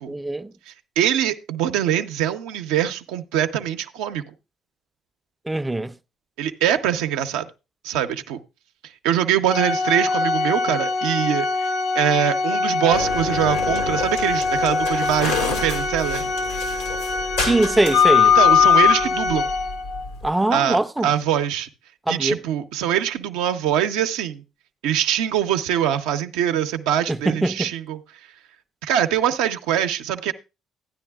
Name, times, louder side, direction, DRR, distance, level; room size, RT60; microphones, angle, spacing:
voice 1, 0.1-0.5 5.5-5.9 17.4-18.4 20.2-21.1 22.1-22.4 27.1-27.7, right 2 dB, 15° right, 0.5 m, -22 dB
voice 2, 0.7-4.2 6.4-7.4 7.8-8.4 9.0-16.3 18.3-19.5 20.5-21.7 22.1-24.4 24.8-28.0 28.8-30.3, right 10 dB, 75° right, 0.6 m, -23 dB
Organ, 9.5-20.1, left 3 dB, 60° left, 0.7 m, -25 dB
sound 1, 12.9-20.3, left 7 dB, 90° left, 1.5 m, -21 dB
13.0 x 9.8 x 2.3 m
hypercardioid pair, 55°, 0 cm